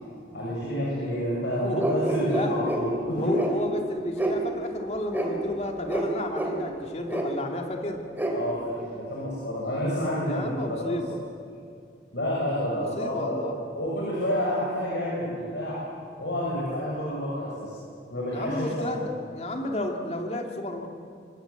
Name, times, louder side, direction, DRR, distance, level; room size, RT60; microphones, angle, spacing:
voice 1, 0.3-3.3 8.3-11.0 12.1-13.5 13.7-15.8 16.2-17.7 18.1-19.1, equal, 85° left, -5 dB, 6.6 m, -29 dB
sound 1, 1.8-2.8 3.4-3.5 4.2-4.4 5.1-5.3 5.9-6.1 6.3-6.5 7.1-7.2 8.2-8.3, right 1 dB, 10° right, 3.2 m, -27 dB
voice 2, 2.3-2.6 3.1-8.0 10.3-11.2 12.7-13.6 18.3-20.9, left 1 dB, 35° left, 3 dB, 2.6 m, -32 dB
26.5 x 20.5 x 8.3 m, 2.4 s
head